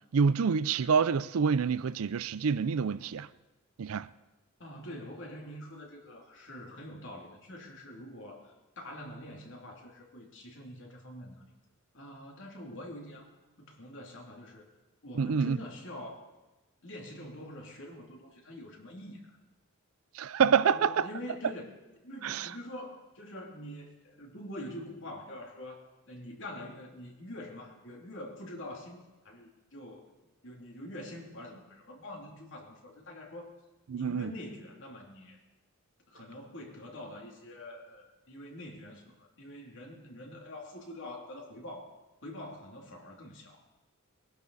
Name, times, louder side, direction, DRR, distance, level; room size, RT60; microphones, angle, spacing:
voice 1, 0.1-3.3 3.8-4.1 15.2-15.6 20.2-21.1 22.2-22.5 33.9-34.3, right 6 dB, 75° right, 0.4 m, -27 dB
voice 2, 4.6-11.4 11.9-13.3 13.6-14.7 15.0-16.3 16.8-19.4 20.6-21.7 22.0-30.1 30.4-33.5 33.9-35.4 36.1-41.9 42.2-43.6, left 1 dB, 60° left, 2.9 m, -45 dB
22.5 x 11.5 x 4.1 m
head